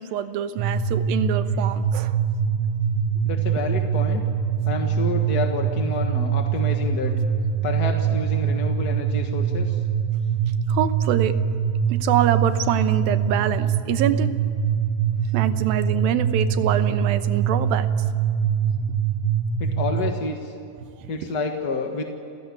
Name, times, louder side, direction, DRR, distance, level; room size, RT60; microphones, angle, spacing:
voice 1, 0.0-2.2 10.7-11.3 11.9-14.3 15.3-18.1 21.0-21.1, right 10 dB, 90° right, 10 dB, 2.8 m, -25 dB
sound 1, 0.6-20.1, right 7 dB, 65° right, 1.9 m, -23 dB
voice 2, 3.2-4.2 4.7-7.1 7.6-9.8 19.6-20.5 21.1-22.1, left 3 dB, 45° left, 3 dB, 1.3 m, -29 dB
30.0 x 16.0 x 9.7 m, 2.6 s
omnidirectional pair, 4.0 m